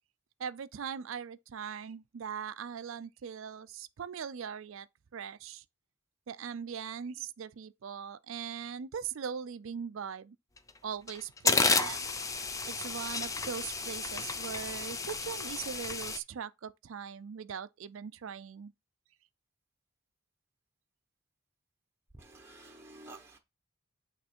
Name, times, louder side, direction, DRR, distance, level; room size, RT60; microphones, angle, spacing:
voice 1, 0.4-4.9 5.1-5.6 6.3-10.4 10.8-12.0 12.7-18.7, right 7 dB, 65° right, 0.4 m, -40 dB
sound 1, 10.6-10.7 11.1-16.2, left 4 dB, 15° left, 0.5 m, -31 dB
voice 2, 22.1-23.4, right 2 dB, 10° right, 0.9 m, -51 dB
8.6 x 3.2 x 4.3 m
head